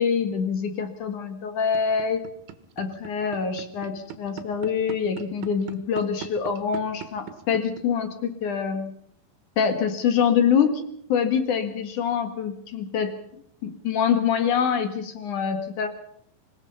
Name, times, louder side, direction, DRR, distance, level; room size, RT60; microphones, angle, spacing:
voice 1, 0.0-2.2 2.8-8.9 9.6-10.8 11.1-13.1 13.6-15.9, left 7 dB, 55° left, 8 dB, 2.5 m, -25 dB
sound 1, 1.6-7.8, right 11 dB, 90° right, 4.0 m, -38 dB
26.0 x 18.0 x 5.6 m, 0.69 s
omnidirectional pair, 5.4 m